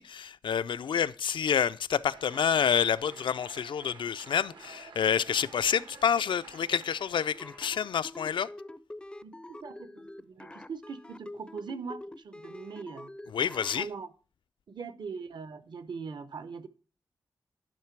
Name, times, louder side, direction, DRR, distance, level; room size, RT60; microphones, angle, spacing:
voice 1, 0.0-8.5 13.3-13.9, left 8 dB, 85° left, 0.4 m, -28 dB
sound 1, 2.1-7.7, right 4 dB, 80° right, 1.2 m, -51 dB
sound 2, 7.3-13.9, left 1 dB, 10° left, 0.4 m, -45 dB
voice 2, 9.2-13.1 13.8-14.1 14.7-16.7, right 5 dB, 65° right, 0.7 m, -41 dB
10.5 x 5.8 x 4.5 m
wide cardioid pair, 155°, 8 cm